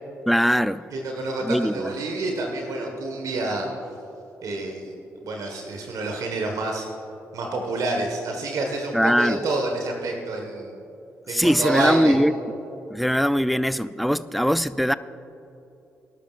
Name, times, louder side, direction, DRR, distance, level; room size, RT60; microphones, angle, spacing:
voice 1, 0.3-0.8 1.4-1.9 8.9-9.4 11.3-12.3 12.9-14.9, equal, ahead, 0.5 m, -21 dB
voice 2, 0.9-3.7 4.4-4.9 5.2-6.9 7.3-10.8 11.3-12.1, right 2 dB, 65° right, 1.5 m, -28 dB
19.5 x 12.5 x 2.5 m
hypercardioid pair, 45°, 7 cm